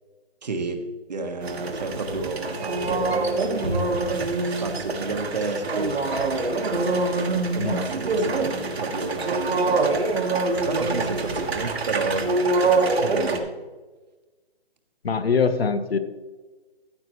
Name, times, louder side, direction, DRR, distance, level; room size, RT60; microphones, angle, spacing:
voice 1, 0.4-0.8 1.1-10.1 10.7-13.5, right 3 dB, 40° right, 5 dB, 1.3 m, -32 dB
sound 1, 1.4-13.4, right 3 dB, 70° right, 1.6 m, -25 dB
voice 2, 7.5-7.9 15.0-16.0, left 5 dB, 65° left, 11 dB, 1.1 m, -23 dB
14.5 x 8.3 x 3.1 m, 1.3 s
hypercardioid pair, 175°, 32 cm